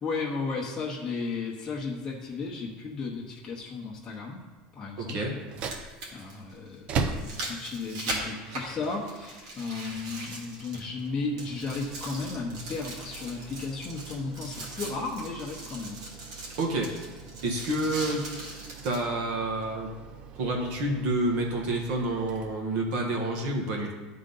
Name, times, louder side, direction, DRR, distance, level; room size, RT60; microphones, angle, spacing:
voice 1, 0.0-4.4 4.7-5.2 6.1-16.0, left 4 dB, 20° left, -4 dB, 0.9 m, -34 dB
sound 1, 2.1-2.2 4.1-4.2 5.3-11.1 11.4-19.1 19.6-19.7, right 2 dB, 90° right, 2.1 m, -40 dB
voice 2, 5.0-5.4 16.6-16.9 17.4-18.3 18.8-20.0 20.3-23.9, right 1 dB, 55° right, -1 dB, 1.2 m, -29 dB
sound 2, 5.4-23.2, right 5 dB, 35° right, 0.6 m, -41 dB
11.0 x 3.8 x 3.9 m, 1.3 s
supercardioid pair, 150°, 3 cm